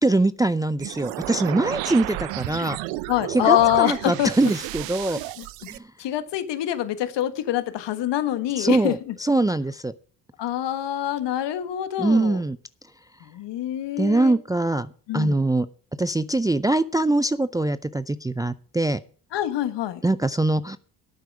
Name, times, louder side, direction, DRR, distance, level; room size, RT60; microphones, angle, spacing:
voice 1, 0.0-2.8 3.3-5.2 5.7-5.8 8.6-9.9 12.0-12.6 14.0-15.7 16.0-19.0 20.0-20.8, right 2 dB, 10° right, 15 dB, 0.5 m, -23 dB
sound 1, 0.8-5.8, right 18 dB, 75° right, 0.8 m, -32 dB
voice 2, 3.1-4.3 5.4-5.5 6.0-9.1 10.4-12.4 13.2-14.3 15.1-15.4 19.3-20.0, left 13 dB, 65° left, 11 dB, 1.6 m, -25 dB
11.5 x 9.1 x 6.1 m, 0.44 s
hypercardioid pair, 55°, 47 cm